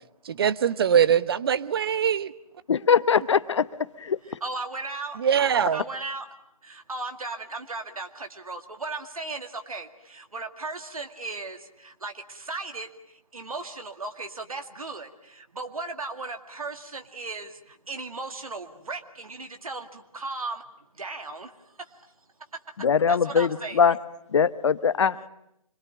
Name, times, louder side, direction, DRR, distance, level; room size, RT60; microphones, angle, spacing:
voice 1, 0.2-2.3 5.2-5.8, right 8 dB, 40° right, 16 dB, 1.0 m, -22 dB
voice 2, 2.7-3.7 4.0-4.2 22.8-24.0 24.3-25.3, left 6 dB, 50° left, 16 dB, 1.0 m, -22 dB
voice 3, 4.4-5.2 5.7-6.3 6.6-12.9 13.3-20.6 21.0-21.5 21.8-21.9 23.1-23.9, right 3 dB, 70° right, 6 dB, 2.2 m, -36 dB
26.0 x 22.0 x 8.9 m, 0.79 s
figure-of-eight pair, 145°, 19 cm